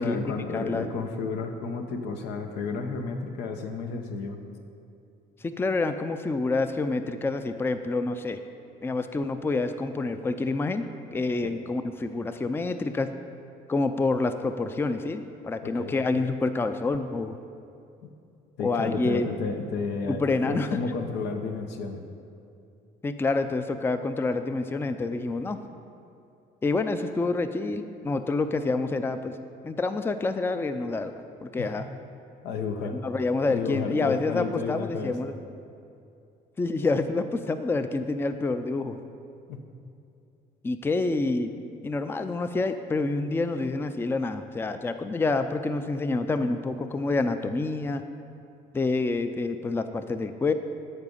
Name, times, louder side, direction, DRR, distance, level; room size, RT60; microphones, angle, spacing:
voice 1, 0.0-4.4 11.4-11.5 15.6-16.0 18.6-22.0 31.6-31.9 32.4-33.0 33.4-35.1 39.5-39.6, left 4 dB, 90° left, 5 dB, 0.9 m, -32 dB
voice 2, 0.5-0.9 5.4-8.4 8.8-10.8 11.1-13.1 13.7-17.3 18.6-19.3 20.1-20.7 23.0-25.6 26.6-29.4 29.6-31.1 31.4-31.8 32.9-35.3 36.6-39.0 40.6-41.5 41.8-48.0 48.7-50.5, left 3 dB, 15° left, 9 dB, 0.4 m, -27 dB
13.0 x 4.9 x 5.4 m, 2.6 s
cardioid pair, 110°, 17 cm